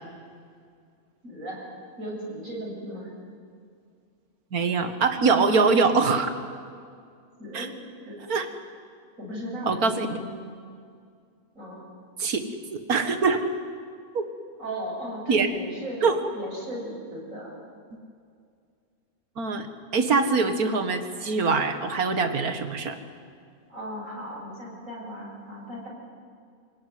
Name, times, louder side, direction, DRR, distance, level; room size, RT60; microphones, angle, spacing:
voice 1, 1.2-1.7 2.0-3.1 7.4-7.8 8.1-8.3 9.2-10.2 11.5-11.8 14.6-16.0 16.3-17.5 23.7-25.9, equal, 60° right, -4 dB, 7.2 m, -36 dB
voice 2, 4.5-6.3 7.5-7.7 8.3-8.5 9.6-10.1 12.2-12.4 12.7-13.4 14.1-14.2 15.3-15.5 16.0-16.2 19.4-19.7 19.9-23.0, right 4 dB, 75° right, 8 dB, 2.1 m, -23 dB
27.0 x 18.0 x 9.5 m, 2.2 s
omnidirectional pair, 1.6 m